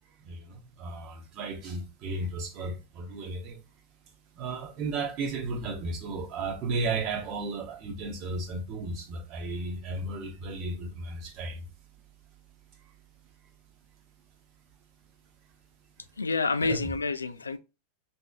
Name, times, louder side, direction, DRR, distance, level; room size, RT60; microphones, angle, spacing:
voice 1, 0.1-3.6 4.0-11.7 12.7-12.9 16.6-16.9, right 3 dB, 40° right, 1.0 m, -34 dB
voice 2, 16.2-17.6, left 4 dB, 75° left, 0.3 m, -28 dB
5.8 x 2.7 x 2.4 m
figure-of-eight pair, 90°, 0 cm